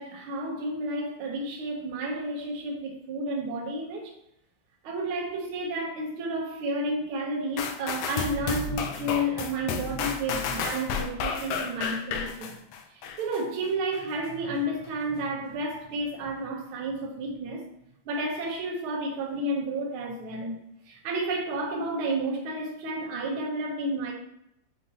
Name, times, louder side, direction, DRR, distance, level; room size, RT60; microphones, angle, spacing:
voice 1, 0.0-4.1 4.8-12.6 12.9-17.6 18.0-20.6 20.9-24.1, right 1 dB, 75° right, -1 dB, 1.2 m, -31 dB
sound 1, 7.6-13.4 13.9-14.0, left 6 dB, 85° left, 1.4 m, -32 dB
5.6 x 2.8 x 2.8 m, 0.78 s
omnidirectional pair, 3.4 m